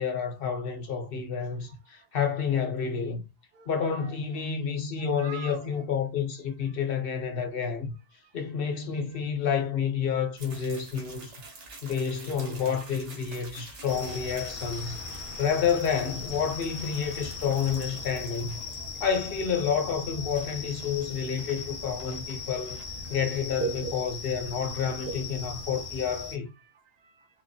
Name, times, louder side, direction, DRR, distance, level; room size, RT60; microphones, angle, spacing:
voice 1, 0.0-3.2 3.7-7.9 8.3-11.3 11.8-15.0 15.4-18.6 19.0-22.8 23.1-26.5, left 7 dB, 55° left, 1.0 m, -29 dB
voice 2, 3.5-4.5 5.0-5.8 8.2-8.4 10.5-10.6 11.4-12.0 12.3-12.4 14.9-15.4 16.9-17.1 18.8-18.9 19.7-19.8 21.2-21.3 23.0-23.3 23.6-23.9 25.1-25.2 26.6-27.3, right 6 dB, 65° right, 0.8 m, -41 dB
sound 1, 10.4-25.7, right 3 dB, 85° right, 1.4 m, -49 dB
sound 2, 13.9-26.4, left 4 dB, 35° left, 0.6 m, -39 dB
4.0 x 2.6 x 2.7 m
omnidirectional pair, 1.2 m